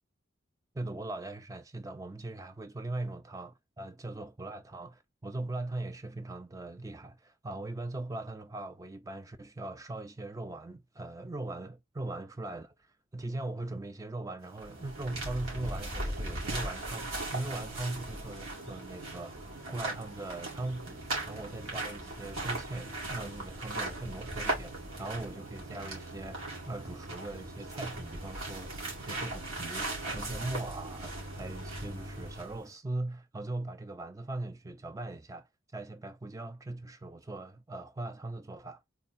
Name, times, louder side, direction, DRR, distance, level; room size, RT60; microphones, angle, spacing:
voice 1, 0.7-12.7 13.1-26.4 26.7-38.8, right 2 dB, 15° right, 0.3 m, -40 dB
sound 1, 14.4-32.7, right 2 dB, 90° right, 2.1 m, -38 dB
3.8 x 2.3 x 4.0 m
head